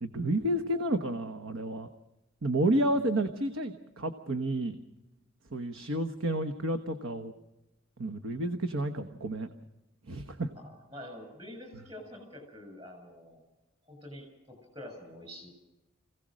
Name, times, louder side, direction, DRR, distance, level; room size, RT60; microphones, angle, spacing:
voice 1, 0.0-1.9 2.4-4.8 5.5-7.3 8.0-9.5 10.1-10.5, right 1 dB, 85° right, 8 dB, 1.1 m, -30 dB
voice 2, 10.6-13.4 13.8-15.5, left 1 dB, 30° right, 6 dB, 7.0 m, -47 dB
25.5 x 16.5 x 6.3 m, 0.98 s
head